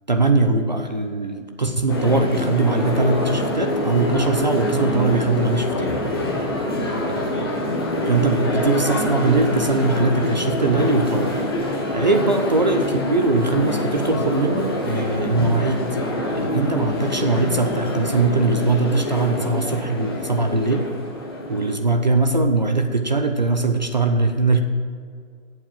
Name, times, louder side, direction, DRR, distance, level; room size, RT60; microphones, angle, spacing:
voice 1, 0.1-5.9 6.8-7.4 8.1-11.4 11.7-15.9 16.3-20.9 21.5-24.6, right 3 dB, 35° right, 6 dB, 0.6 m, -21 dB
sound 1, 1.9-21.8, left 1 dB, 20° left, 1.0 m, -25 dB
13.5 x 7.7 x 7.5 m, 2.1 s
hypercardioid pair, 170°, 39 cm